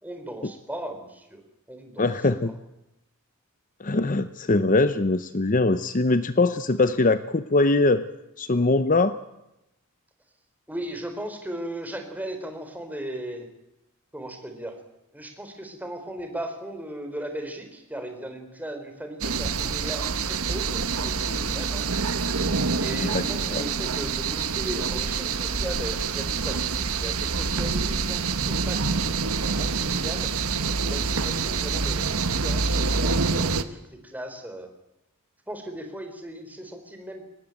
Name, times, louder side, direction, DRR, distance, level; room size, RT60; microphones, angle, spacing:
voice 1, 0.0-1.4 1.7-2.1 2.4-2.6 10.7-13.5 14.1-14.8 15.1-21.9 22.8-30.3 30.8-34.7 35.5-37.2, right 1 dB, 10° right, 6 dB, 4.0 m, -37 dB
voice 2, 2.0-2.5 3.8-8.1 8.4-9.2 23.0-23.6, left 2 dB, 35° left, 12 dB, 0.8 m, -22 dB
sound 1, 19.2-33.6, right 4 dB, 75° right, 1.4 m, -26 dB
23.5 x 19.5 x 9.0 m, 0.90 s
head